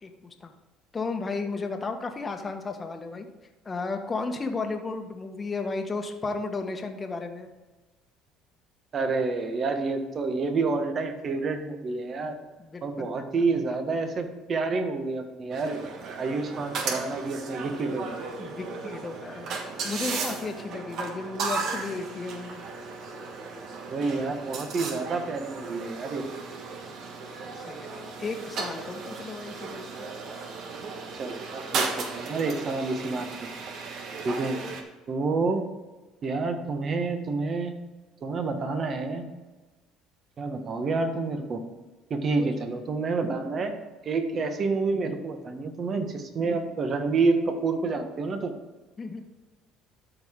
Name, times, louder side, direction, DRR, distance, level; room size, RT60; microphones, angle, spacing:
voice 1, 0.0-0.5 0.9-3.3 3.6-7.5 12.6-13.3 18.4-19.6 19.8-22.6 27.6-30.1 42.4-42.5 49.0-49.2, left 3 dB, 30° left, 5 dB, 1.2 m, -34 dB
voice 2, 8.9-12.3 12.8-15.8 16.2-18.2 23.9-26.2 31.1-33.3 34.2-34.6 35.1-35.6 36.2-37.7 38.2-39.3 40.4-41.6 42.1-43.7 44.0-48.5, right 3 dB, 45° right, 6 dB, 1.4 m, -28 dB
sound 1, 15.5-34.8, right 4 dB, 60° right, 1.4 m, -35 dB
13.0 x 4.8 x 3.7 m, 1.2 s
supercardioid pair, 80°, 0 cm